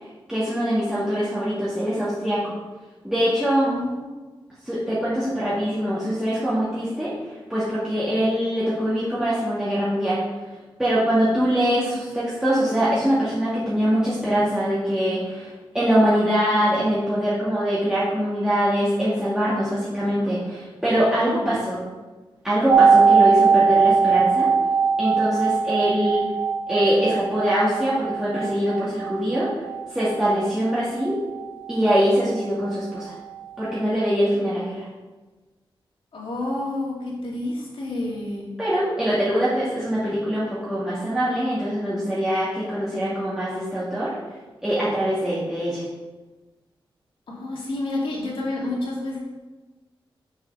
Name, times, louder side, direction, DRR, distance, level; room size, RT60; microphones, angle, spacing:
voice 1, 0.3-2.5 3.0-3.7 4.6-10.2 10.8-21.8 22.4-24.5 25.0-26.2 26.7-29.5 29.9-31.2 31.7-33.1 33.6-34.9 38.6-44.1 44.6-45.8, equal, 5° right, -10 dB, 2.1 m, -23 dB
voice 2, 3.6-4.2 11.4-11.6 21.2-21.6 36.1-38.5 47.3-49.2, left 2 dB, 70° left, -4 dB, 2.6 m, -29 dB
sound 1, 22.7-32.4 32.7-32.8, right 5 dB, 65° right, 0.8 m, -21 dB
6.7 x 5.7 x 5.6 m, 1.2 s
wide cardioid pair, 105°, 9 cm